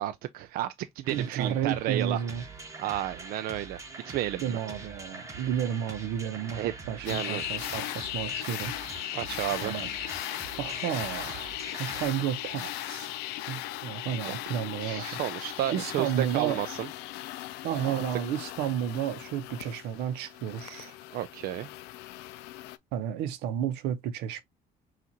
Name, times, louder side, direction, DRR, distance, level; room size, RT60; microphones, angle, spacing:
voice 1, 0.0-2.2 2.8-4.6 6.5-6.7 7.0-7.4 9.1-9.7 14.2-14.4 14.8-16.9 17.8-18.0 21.1-21.7, right 13 dB, 60° right, 0.4 m, -32 dB
sound 1, 1.0-12.1, right 3 dB, 20° right, 1.1 m, -44 dB
voice 2, 1.1-2.4 4.4-8.7 9.6-9.9 10.6-11.5 11.8-13.1 13.5-15.2 15.7-16.6 17.6-21.0 22.9-24.4, right 9 dB, 85° right, 0.8 m, -32 dB
sound 2, 7.1-22.8, left 16 dB, 85° left, 0.4 m, -38 dB
5.8 x 2.5 x 2.7 m
cardioid pair, 130°, 17 cm